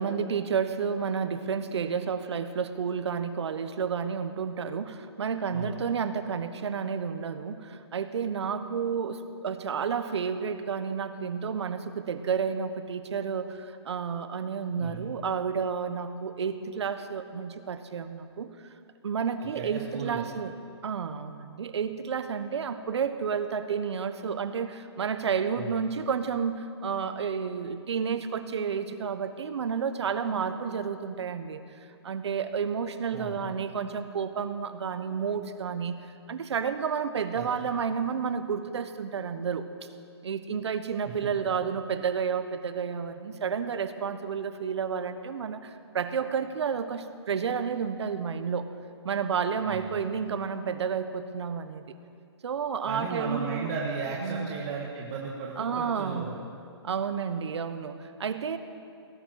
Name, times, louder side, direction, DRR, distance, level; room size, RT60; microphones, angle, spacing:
voice 1, 0.0-18.5 19.0-20.5 20.8-31.6 32.0-36.0 36.3-39.6 40.2-48.7 49.0-51.9 52.4-53.7 54.2-54.5 55.6-56.3 56.8-58.6, right 6 dB, 70° right, 10 dB, 1.2 m, -31 dB
voice 2, 19.5-20.3 25.6-25.7 33.1-33.4 37.3-37.5 41.2-41.3 49.6-50.0 52.9-56.3, right 5 dB, 30° right, -2 dB, 1.7 m, -35 dB
18.0 x 11.5 x 6.6 m, 2.4 s
hypercardioid pair, 155°, 15 cm